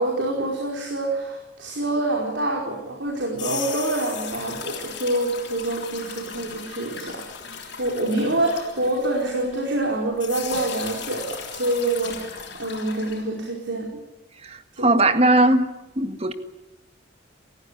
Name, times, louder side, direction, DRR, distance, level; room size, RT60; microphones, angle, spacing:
voice 1, 0.0-7.2 7.8-13.9 14.8-15.1, right 2 dB, 70° right, 0 dB, 4.8 m, -26 dB
sound 1, 3.1-9.8 10.2-13.2, left 7 dB, 60° left, 6.8 m, -36 dB
voice 2, 14.4-15.7 16.0-16.3, right 2 dB, 30° right, 9 dB, 1.7 m, -19 dB
29.5 x 16.0 x 9.9 m, 0.95 s
head